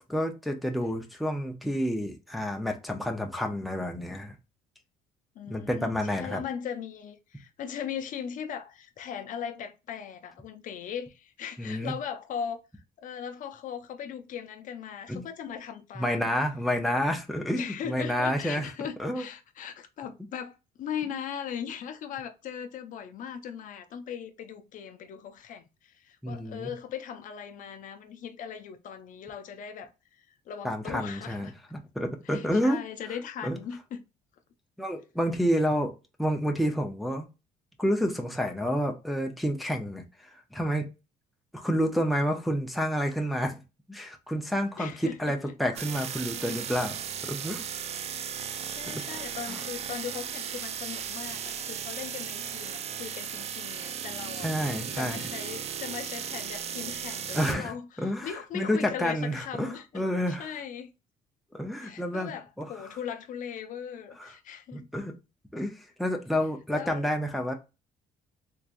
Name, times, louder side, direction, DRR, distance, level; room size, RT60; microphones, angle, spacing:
voice 1, 0.0-4.4 5.5-6.4 11.6-11.9 15.1-15.2 16.0-18.7 19.0-19.2 26.2-26.7 30.6-32.8 33.4-33.6 34.8-35.9 36.2-37.3 37.8-40.9 41.5-43.6 43.9-47.0 47.2-47.6 48.9-49.0 49.5-49.6 54.4-55.3 57.3-57.7 58.0-60.5 61.5-62.3 62.6-62.7 64.2-64.3 64.7-65.1 65.5-67.5, equal, ahead, 0.6 m, -29 dB
voice 2, 5.4-16.3 17.5-31.5 32.2-34.0 44.8-45.2 45.4-45.5 48.3-54.5 54.8-60.9 61.8-64.9 66.7-67.1, left 8 dB, 55° left, 0.5 m, -39 dB
sound 1, 45.8-57.5, right 8 dB, 40° right, 0.4 m, -36 dB
3.6 x 3.0 x 2.5 m
cardioid pair, 120°, 16 cm